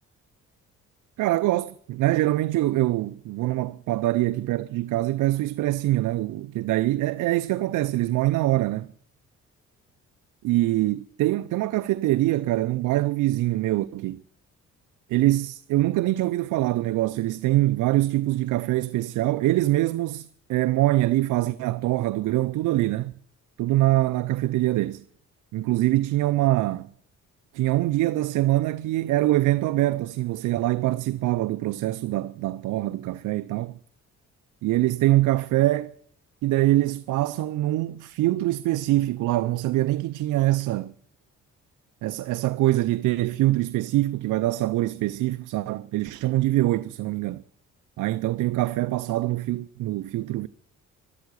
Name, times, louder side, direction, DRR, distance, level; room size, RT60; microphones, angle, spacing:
voice 1, 1.2-8.9 10.4-14.2 15.1-23.1 23.6-25.0 25.5-26.9 27.5-33.8 34.6-35.9 36.4-40.9 42.0-47.4 48.0-50.5, right 16 dB, 80° right, 0.6 m, -24 dB
13.0 x 11.5 x 9.6 m
cardioid pair, 90°, 30 cm